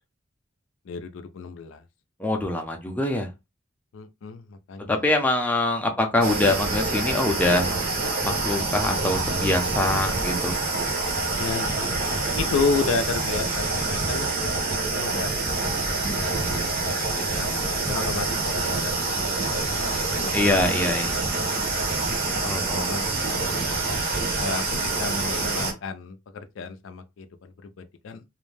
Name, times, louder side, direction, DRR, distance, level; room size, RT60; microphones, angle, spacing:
voice 1, 0.9-1.8 3.9-4.9 11.2-11.9 12.4-15.3 16.1-20.4 21.8-22.2 22.5-23.5 24.4-28.2, left 4 dB, 80° left, 0.4 m, -32 dB
voice 2, 2.2-3.3 4.9-7.7 8.2-10.6 20.3-21.2 22.4-23.0, left 2 dB, 10° left, 0.5 m, -24 dB
sound 1, 6.2-25.7, right 3 dB, 50° right, 0.7 m, -26 dB
2.5 x 2.1 x 3.2 m
head